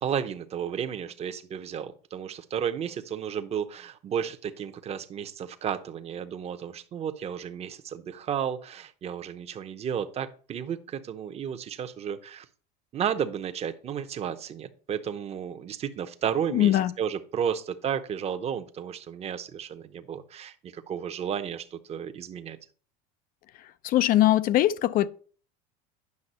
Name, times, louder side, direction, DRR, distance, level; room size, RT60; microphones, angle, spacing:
voice 1, 0.0-12.5 12.9-22.6, right 8 dB, 30° right, 0.9 m, -33 dB
voice 2, 16.5-16.9 23.8-25.1, left 13 dB, 45° left, 0.5 m, -21 dB
9.7 x 5.9 x 4.2 m
supercardioid pair, 120°, 20 cm